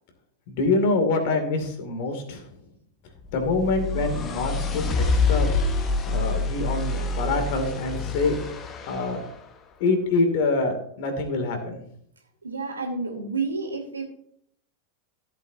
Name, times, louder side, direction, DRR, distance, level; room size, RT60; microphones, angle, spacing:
voice 1, 0.5-2.5 3.3-5.5 6.1-8.4 8.9-9.2 9.8-11.8, left 3 dB, 50° left, 6 dB, 2.4 m, -25 dB
sound 1, 3.2-9.3, left 3 dB, 25° left, 1.3 m, -26 dB
voice 2, 12.4-14.0, right 4 dB, 75° right, 2 dB, 2.6 m, -30 dB
14.5 x 8.0 x 2.7 m, 0.67 s
figure-of-eight pair, 90°, 0 cm